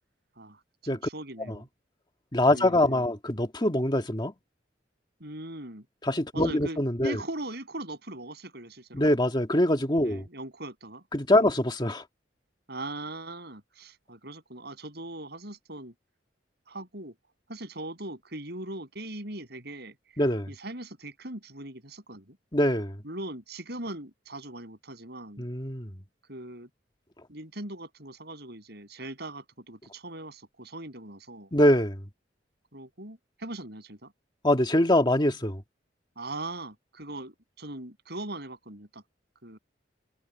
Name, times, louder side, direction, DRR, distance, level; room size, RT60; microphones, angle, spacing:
voice 1, 0.4-1.7 2.5-3.0 5.2-5.8 6.3-9.0 10.0-11.0 11.3-11.5 12.7-15.9 16.7-17.1 17.5-19.9 20.5-22.4 23.0-25.5 26.3-26.7 27.3-31.5 32.7-34.1 36.2-39.0 39.4-39.6, right 1 dB, 60° right, 7.8 m, -40 dB
voice 2, 2.3-4.3 6.0-7.2 8.9-10.2 11.1-12.0 20.2-20.5 22.5-22.9 25.4-25.9 31.5-32.0 34.4-35.6, left 1 dB, 25° left, 2.0 m, -24 dB
head